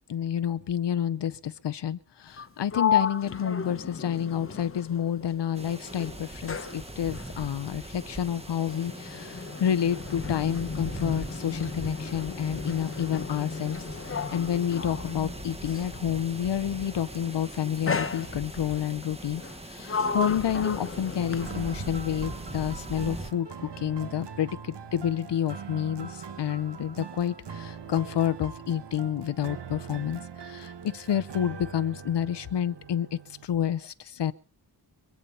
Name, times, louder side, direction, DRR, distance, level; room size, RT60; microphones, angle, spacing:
voice 1, 0.1-34.3, left 9 dB, 80° left, 12 dB, 0.8 m, -29 dB
Sliding door, 2.3-5.6 5.9-16.0 16.9-17.2 17.9-18.8 19.4-21.9, left 6 dB, 30° left, 1.0 m, -34 dB
sound 1, 5.5-23.3, right 1 dB, 15° right, 1.2 m, -41 dB
sound 2, 21.2-33.5, right 6 dB, 80° right, 1.4 m, -42 dB
25.0 x 8.6 x 5.5 m, 0.39 s
wide cardioid pair, 145°, 41 cm